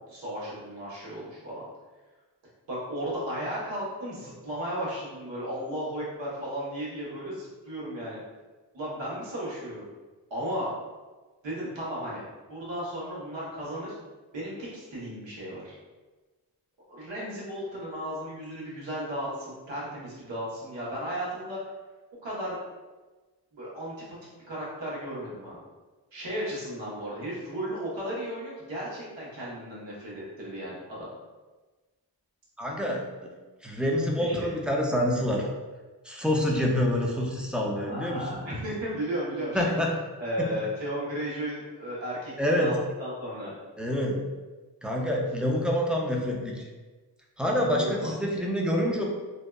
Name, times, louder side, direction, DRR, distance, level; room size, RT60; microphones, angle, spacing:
voice 1, 0.1-1.6 2.7-8.2 8.7-9.9 10.3-10.7 11.4-12.2 12.5-13.9 14.3-15.8 16.9-21.6 22.2-22.6 23.5-23.9 24.5-25.6 26.1-31.1 34.1-34.5 37.8-39.7 40.2-43.5 47.6-48.1, equal, 80° right, -7 dB, 1.0 m, -35 dB
voice 2, 32.6-33.3 33.6-35.4 36.0-38.2 39.5-39.9 40.4-40.5 42.4-42.7 43.8-44.2 44.8-46.7 47.4-49.0, equal, ahead, -2 dB, 0.3 m, -27 dB
2.6 x 2.2 x 2.2 m, 1.3 s
cardioid pair, 75°, 44 cm